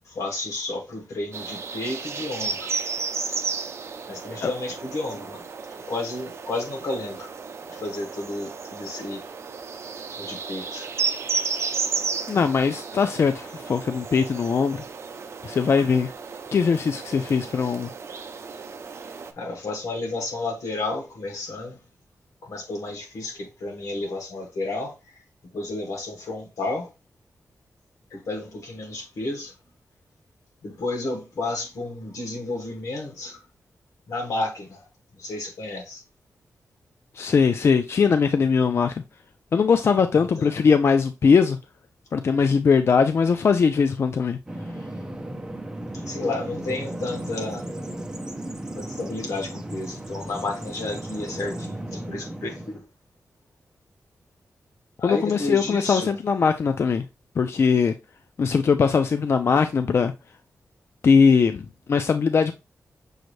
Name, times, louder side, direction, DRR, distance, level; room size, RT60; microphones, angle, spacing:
voice 1, 0.0-2.7 4.1-5.5 5.9-7.3 7.7-9.2 10.2-10.9 19.3-21.8 22.4-25.1 25.5-26.9 28.1-29.5 30.6-33.4 34.1-34.9 35.1-36.0 40.2-40.5 45.9-47.6 48.8-52.8 55.0-56.2, left 2 dB, 85° left, 1.5 m, -32 dB
sound 1, 1.3-19.3, right 5 dB, 55° right, 0.5 m, -33 dB
voice 2, 12.3-14.8 15.4-16.1 16.5-17.9 37.2-38.9 39.5-41.6 42.1-44.4 55.0-57.1 57.4-57.9 58.4-60.1 61.0-62.5, left 5 dB, 50° left, 0.3 m, -20 dB
Bird vocalization bird call bird song, 44.5-52.8, right 1 dB, 10° right, 0.7 m, -35 dB
6.3 x 2.6 x 3.1 m
wide cardioid pair, 120°, 5 cm